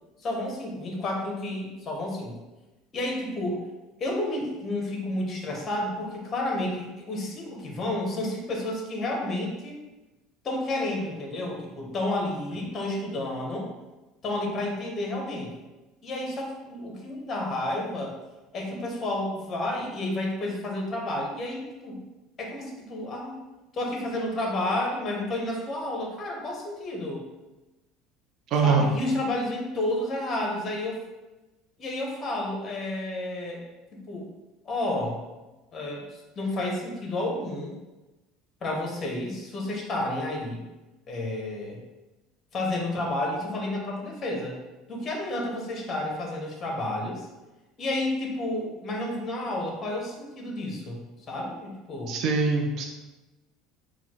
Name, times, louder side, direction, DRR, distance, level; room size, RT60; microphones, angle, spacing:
voice 1, 0.2-2.3 2.9-3.6 4.0-9.8 10.4-13.7 14.2-15.5 16.0-18.2 18.5-22.0 22.4-23.4 23.7-27.2 28.6-31.0 31.8-33.6 34.1-34.2 34.6-35.2 35.7-37.7 38.6-40.6 41.1-41.8 42.5-44.6 44.9-47.3 47.8-51.0 51.3-52.2, left 1 dB, 35° left, 0 dB, 1.2 m, -31 dB
voice 2, 28.5-28.8 52.1-52.8, right 5 dB, 55° right, 1 dB, 0.7 m, -23 dB
4.1 x 2.4 x 4.5 m, 1.1 s
supercardioid pair, 115°, 0 cm